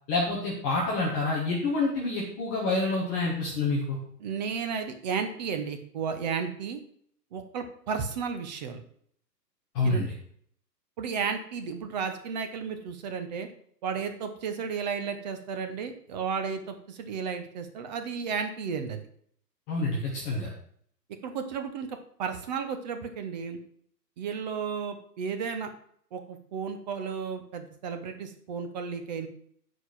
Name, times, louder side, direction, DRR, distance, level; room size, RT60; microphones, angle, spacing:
voice 1, 0.1-4.0 9.7-10.1 19.7-20.5, left 2 dB, 10° left, -4 dB, 0.6 m, -27 dB
voice 2, 4.2-6.8 7.3-8.8 9.8-10.0 11.0-13.5 13.8-19.0 21.2-21.9 22.2-23.6 24.2-25.7 26.1-29.3, right 6 dB, 25° right, 7 dB, 0.8 m, -33 dB
7.9 x 5.1 x 5.7 m, 0.62 s
figure-of-eight pair, 125°, 50 cm